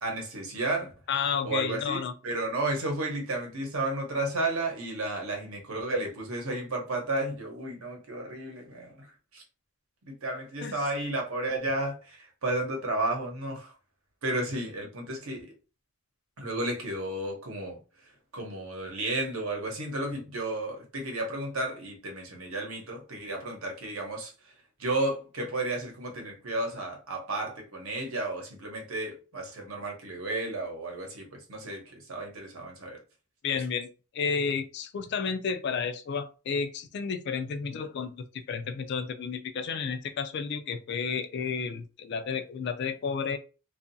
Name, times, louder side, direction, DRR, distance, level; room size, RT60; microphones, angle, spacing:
voice 1, 0.0-0.9 1.4-9.1 9.3-9.4 10.0-13.7 14.2-15.5 16.4-17.8 18.3-24.3 24.8-33.0, right 2 dB, 75° right, 0.9 m, -32 dB
voice 2, 1.1-2.1 10.6-10.8 33.4-33.9 34.1-43.4, left 6 dB, 50° left, 0.3 m, -31 dB
2.6 x 2.4 x 2.6 m
head